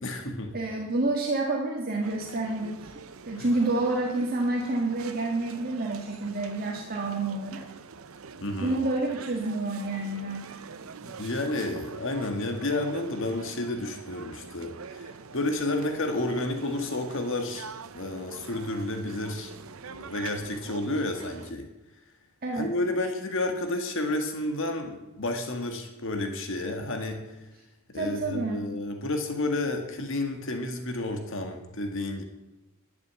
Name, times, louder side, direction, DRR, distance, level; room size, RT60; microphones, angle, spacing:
voice 1, 0.0-0.6 3.4-3.5 8.4-8.8 11.0-17.7 17.9-21.7 22.5-27.3 27.9-32.2, left 2 dB, 65° left, 5 dB, 1.8 m, -31 dB
voice 2, 0.5-2.9 3.3-7.6 8.6-10.6 22.4-22.7 27.9-28.6, right 2 dB, 45° right, 0 dB, 1.7 m, -29 dB
sound 1, 2.0-21.5, right 5 dB, 85° right, 0.8 m, -45 dB
11.5 x 9.5 x 8.2 m, 1.0 s
head